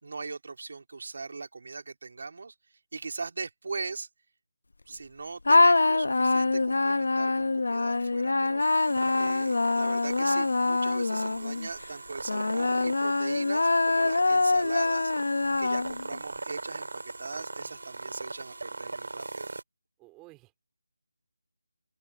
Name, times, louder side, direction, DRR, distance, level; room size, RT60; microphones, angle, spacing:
voice 1, 0.0-2.5 2.9-4.1 4.9-8.9 9.1-15.1 15.6-19.5, right 4 dB, 50° right, 3.6 m, -40 dB
sound 1, 5.4-11.7 12.3-16.2, left 3 dB, 70° left, 1.0 m, -25 dB
sound 2, 8.6-19.6, right 3 dB, 70° right, 6.6 m, -41 dB
voice 2, 20.0-20.6, right 21 dB, 10° right, 3.1 m, -54 dB
open air
figure-of-eight pair, 175°, 0 cm